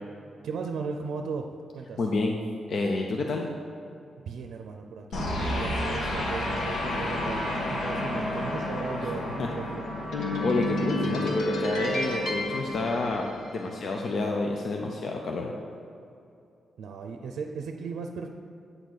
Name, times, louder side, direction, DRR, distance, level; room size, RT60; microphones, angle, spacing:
voice 1, 0.4-2.0 4.3-9.8 16.8-18.3, right 5 dB, 90° right, 4 dB, 0.5 m, -36 dB
voice 2, 2.0-2.4 2.7-3.5 9.4-9.5 10.4-13.2 13.5-15.5, left 3 dB, 55° left, 1 dB, 0.6 m, -29 dB
sound 1, 5.1-13.7, left 1 dB, 80° left, 1.3 m, -30 dB
Trumpet, 6.1-12.8, left 2 dB, 35° left, 1.6 m, -41 dB
9.1 x 6.6 x 4.0 m, 2.6 s
wide cardioid pair, 140°, 0 cm